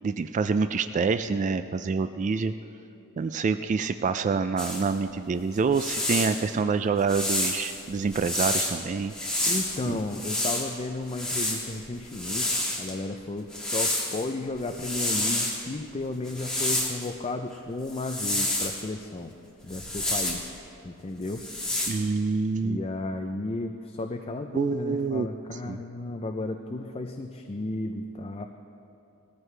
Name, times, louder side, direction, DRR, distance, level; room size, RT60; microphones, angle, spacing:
voice 1, 0.0-2.5 3.2-9.5 9.9-10.0 21.9-22.8 24.5-25.3 25.7-25.8, right 4 dB, 35° right, 10 dB, 0.3 m, -27 dB
sound 1, 4.6-4.8 5.6-6.4 7.1-8.7 9.1-10.7 11.1-12.9 13.5-14.2 14.6-15.6 16.2-17.1 17.9-18.8 19.7-20.5 21.2-21.9, left 1 dB, 5° left, 2.3 m, -29 dB
voice 2, 9.5-19.3 19.6-20.5 20.8-21.4 22.6-28.5, left 2 dB, 25° left, 5 dB, 0.5 m, -33 dB
19.5 x 14.0 x 3.3 m, 2.7 s
head